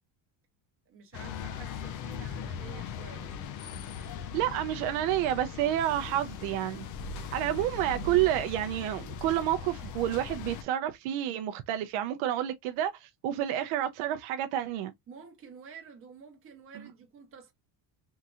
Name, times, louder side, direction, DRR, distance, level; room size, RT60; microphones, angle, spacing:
voice 1, 0.9-3.3 15.1-17.5, right 6 dB, 25° right, 1.1 m, -50 dB
sound 1, 1.1-10.6, left 6 dB, 40° left, 0.4 m, -39 dB
voice 2, 4.3-6.9 7.3-14.9, right 12 dB, 70° right, 0.6 m, -29 dB
3.7 x 2.8 x 2.3 m
cardioid pair, 170°, 49 cm